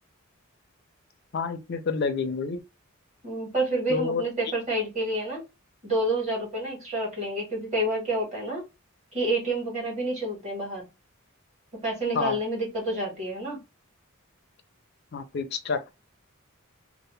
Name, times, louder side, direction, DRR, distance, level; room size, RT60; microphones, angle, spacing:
voice 1, 1.3-2.6 3.9-4.2 12.1-12.4 15.1-15.9, left 5 dB, 50° left, 0.4 m, -28 dB
voice 2, 3.2-5.4 5.8-8.6 9.1-10.9 11.7-13.6, right 1 dB, 30° right, 1.4 m, -29 dB
2.8 x 2.0 x 3.1 m
head